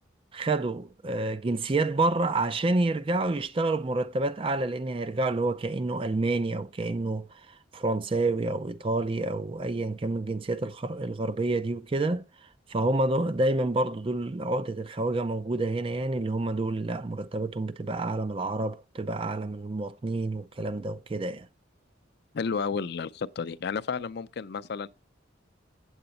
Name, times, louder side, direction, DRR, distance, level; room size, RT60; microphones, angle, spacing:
voice 1, 0.3-7.3 7.7-12.2 12.7-21.5, right 2 dB, 30° right, 0.4 m, -28 dB
voice 2, 22.3-24.9, left 5 dB, 60° left, 0.5 m, -32 dB
8.0 x 7.8 x 4.1 m
head